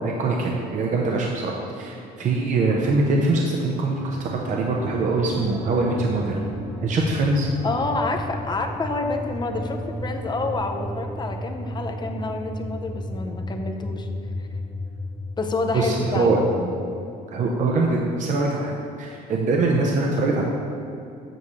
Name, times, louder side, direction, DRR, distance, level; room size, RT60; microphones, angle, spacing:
voice 1, 0.0-6.4 6.8-7.5 15.7-16.4 17.3-20.4, right 3 dB, 50° right, -1 dB, 0.8 m, -23 dB
sound 1, 3.8-17.0, left 1 dB, 10° right, 0.7 m, -34 dB
voice 2, 7.6-14.1 14.4-14.5 15.4-16.7, left 3 dB, 25° left, 4 dB, 0.7 m, -28 dB
7.7 x 7.1 x 3.2 m, 2.6 s
cardioid pair, 110°, 17 cm